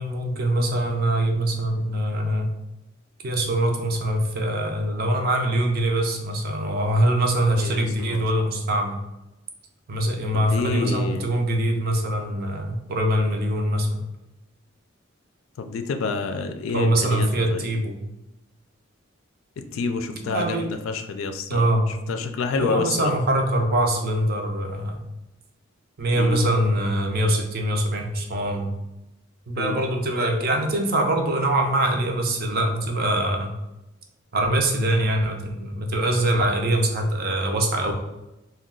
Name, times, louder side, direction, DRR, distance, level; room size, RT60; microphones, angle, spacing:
voice 1, 0.0-2.5 3.2-9.0 9.9-14.0 16.7-18.0 20.2-20.7 21.5-21.9 22.6-25.1 26.0-28.7 29.5-33.5 34.3-37.9, right 1 dB, 50° right, 3 dB, 0.5 m, -23 dB
voice 2, 7.6-8.2 10.3-11.4 15.6-17.7 19.6-23.1 26.2-26.4 29.6-29.8, left 4 dB, 90° left, 6 dB, 0.3 m, -28 dB
2.3 x 2.2 x 3.6 m, 0.95 s
head